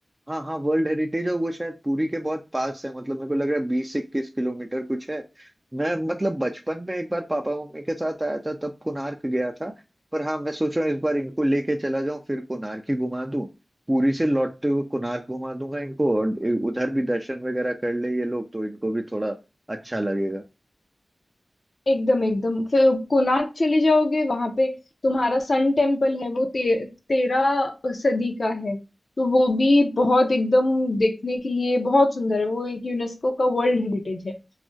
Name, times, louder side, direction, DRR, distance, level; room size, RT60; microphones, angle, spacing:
voice 1, 0.3-9.7 10.1-13.5 13.9-19.4 19.7-20.4, right 1 dB, 20° right, 0.3 m, -26 dB
voice 2, 21.9-24.8 25.0-28.8 29.2-34.3, left 2 dB, 55° left, 0.5 m, -22 dB
2.4 x 2.0 x 3.8 m
wide cardioid pair, 75°, 0 cm